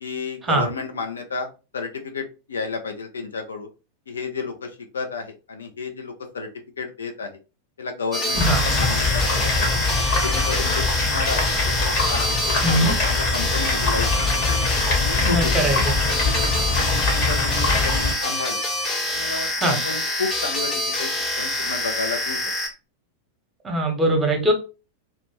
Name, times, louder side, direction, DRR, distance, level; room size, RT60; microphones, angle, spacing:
voice 1, 0.0-1.5 1.7-3.7 4.1-6.5 6.8-7.3 7.8-9.7 10.2-14.1 14.4-14.5 15.0-15.5 16.2-16.5 16.9-18.6 19.1-22.4, left 4 dB, 70° left, 5 dB, 0.5 m, -32 dB
sound 1, 8.1-22.7, left 1 dB, 15° left, 0.8 m, -26 dB
sound 2, 8.3-18.1, left 3 dB, 45° left, 1.0 m, -23 dB
voice 2, 8.3-8.6 12.6-12.9 15.2-15.9 19.6-19.8 23.6-24.5, right 1 dB, 15° right, 2 dB, 0.9 m, -21 dB
2.5 x 2.1 x 3.1 m, 0.31 s
figure-of-eight pair, 90°, 0 cm